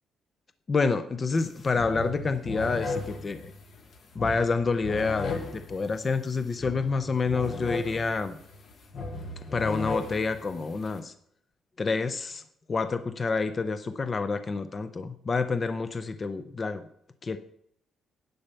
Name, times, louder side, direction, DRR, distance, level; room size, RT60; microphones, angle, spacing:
voice 1, 0.7-3.5 4.1-8.4 9.5-11.1 11.8-12.4 12.7-16.8 17.2-17.4, left 4 dB, 25° left, 11 dB, 0.5 m, -28 dB
sound 1, 1.4-1.5 1.7-11.0, left 3 dB, 40° left, 1.1 m, -37 dB
10.5 x 5.5 x 6.8 m, 0.70 s
cardioid pair, 170°, 0 cm